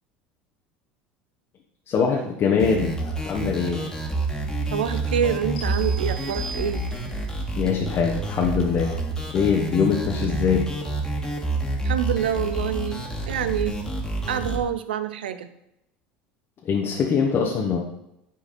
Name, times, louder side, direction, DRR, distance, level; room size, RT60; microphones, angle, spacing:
voice 1, 1.9-3.9 7.6-9.0 9.3-10.6 16.6-17.8, left 6 dB, 45° left, -1 dB, 1.3 m, -23 dB
sound 1, 2.6-14.6, right 2 dB, 10° left, 2.1 m, -28 dB
voice 2, 4.7-6.8 11.8-13.8 14.3-15.5, right 9 dB, 85° right, 12 dB, 0.6 m, -26 dB
sound 2, 5.6-7.3, right 5 dB, 75° left, 1.9 m, -39 dB
9.7 x 4.6 x 4.2 m, 0.86 s
hypercardioid pair, 85°, 5 cm